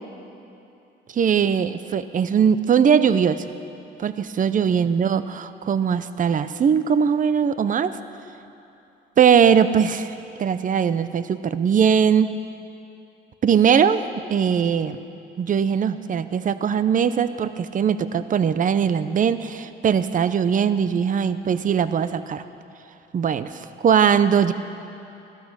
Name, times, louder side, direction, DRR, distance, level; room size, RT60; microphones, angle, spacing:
voice 1, 1.1-3.4 4.0-7.9 9.2-10.1 10.4-12.3 13.4-14.0 14.3-15.0 15.4-22.4 23.1-24.5, right 7 dB, 40° right, 13 dB, 0.6 m, -20 dB
15.5 x 12.5 x 6.2 m, 2.7 s
cardioid pair, 90°, 20 cm